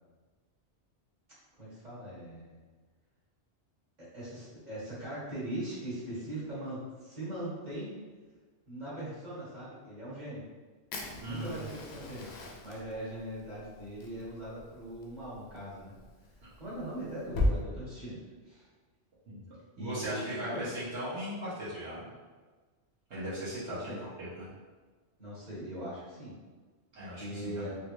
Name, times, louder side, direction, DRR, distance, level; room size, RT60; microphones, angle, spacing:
voice 1, 1.6-2.5 4.0-7.9 8.7-10.4 11.2-12.3 12.6-15.9 16.6-18.2 18.4-18.7 19.8-20.7 23.7-24.0 25.2-26.4 26.9-27.8, right 1 dB, 45° right, -10 dB, 1.4 m, -40 dB
Fire, 10.9-17.5, left 2 dB, 75° left, 0.8 m, -37 dB
voice 2, 11.2-11.6 16.4-16.5 19.3-19.4 19.8-22.1 23.1-24.5 26.9-27.8, equal, 75° right, -10 dB, 1.2 m, -38 dB
3.4 x 2.5 x 3.0 m, 1.4 s
omnidirectional pair, 1.1 m